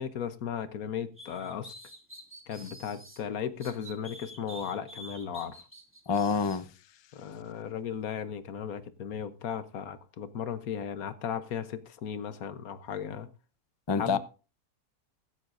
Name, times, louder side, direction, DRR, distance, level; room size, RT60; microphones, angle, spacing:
voice 1, 0.0-1.7 2.5-5.6 7.1-13.3 14.0-14.2, left 8 dB, 70° left, 1.3 m, -36 dB
sound 1, 1.2-3.2 3.6-6.6, equal, 10° right, 2.6 m, -48 dB
voice 2, 6.1-6.7 13.9-14.2, left 5 dB, 40° left, 0.4 m, -26 dB
15.5 x 12.5 x 2.6 m
omnidirectional pair, 1.6 m